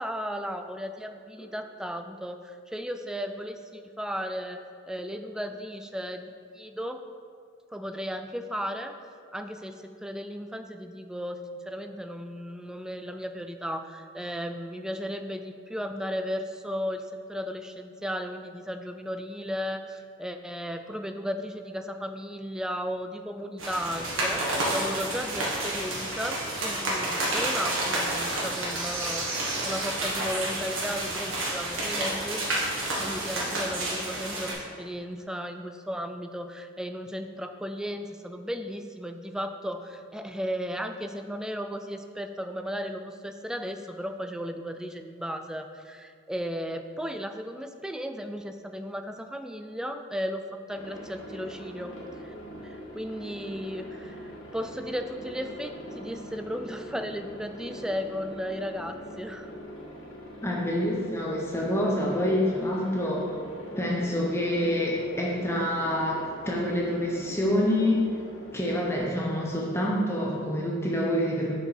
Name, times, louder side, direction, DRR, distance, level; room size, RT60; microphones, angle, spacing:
voice 1, 0.0-4.6 4.9-7.0 7.7-9.0 9.3-32.4 33.0-50.4 50.7-51.9 52.2-52.3 52.6-59.5, equal, 5° right, 6 dB, 0.3 m, -35 dB
sound 1, 23.6-34.5, right 1 dB, 85° right, 1.6 m, -30 dB
Aircraft, 50.7-69.0, equal, 75° left, 1.5 m, -43 dB
voice 2, 60.4-63.3 63.8-68.0 68.5-71.5, left 1 dB, 15° left, -3 dB, 0.8 m, -27 dB
6.5 x 4.8 x 4.8 m, 2.1 s
head